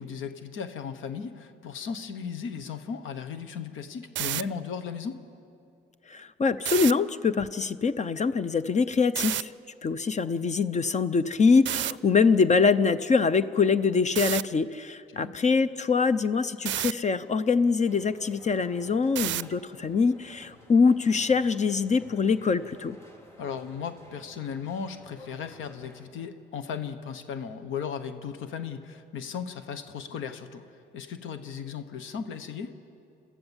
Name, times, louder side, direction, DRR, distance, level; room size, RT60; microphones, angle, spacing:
voice 1, 0.0-5.2 15.1-15.3 23.4-30.6 30.9-32.7, left 6 dB, 80° left, 10 dB, 1.2 m, -36 dB
sound 1, 4.0-4.4 6.6-6.9 9.1-9.4 11.7-11.9 14.2-14.4 16.7-16.9 19.2-19.5, right 15 dB, 70° right, 0.4 m, -29 dB
voice 2, 6.1-9.5 9.8-23.0, left 5 dB, 35° left, 14 dB, 0.6 m, -24 dB
sound 2, 17.9-26.1, left 1 dB, 15° left, 3.3 m, -53 dB
26.5 x 14.5 x 7.3 m, 2.6 s
cardioid pair, 90°, 20 cm